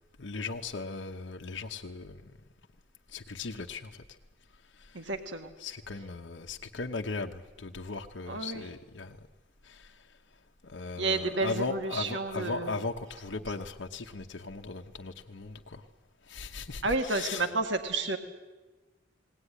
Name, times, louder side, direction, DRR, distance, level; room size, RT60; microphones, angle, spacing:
voice 1, 0.2-2.3 3.1-4.0 4.7-5.1 5.6-9.2 9.6-10.1 10.6-15.8 16.2-17.5, left 3 dB, 70° left, 2 dB, 1.0 m, -38 dB
voice 2, 5.0-5.5 8.3-8.6 11.0-12.7 16.8-18.2, right 3 dB, 70° right, 6 dB, 1.7 m, -31 dB
20.0 x 18.0 x 9.9 m, 1.2 s
head